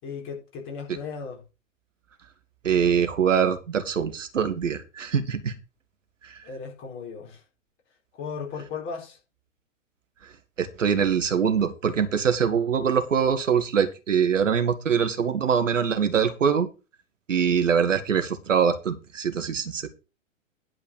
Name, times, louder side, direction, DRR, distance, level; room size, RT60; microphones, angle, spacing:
voice 1, 0.0-1.4 6.4-7.4 8.2-9.2, left 5 dB, 30° left, 4.3 m, -36 dB
voice 2, 2.6-5.5 6.3-6.4 10.6-16.7 17.3-19.9, right 7 dB, 70° right, 2.1 m, -23 dB
11.0 x 5.3 x 6.7 m
figure-of-eight pair, 105°, 39 cm